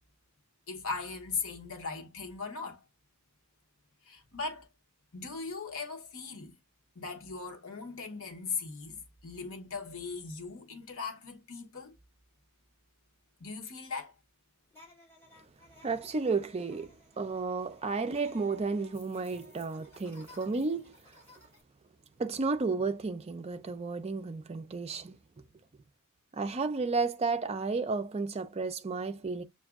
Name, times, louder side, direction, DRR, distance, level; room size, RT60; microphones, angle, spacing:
voice 1, 0.7-2.8 4.1-4.7 5.1-6.5 6.9-11.9 13.4-14.1, left 4 dB, 70° left, 1.0 m, -39 dB
sound 1, 14.7-21.6, left 2 dB, 10° left, 2.6 m, -57 dB
voice 2, 15.8-21.2 22.2-25.2 26.3-29.4, right 4 dB, 30° right, 0.4 m, -32 dB
6.8 x 2.6 x 2.4 m
head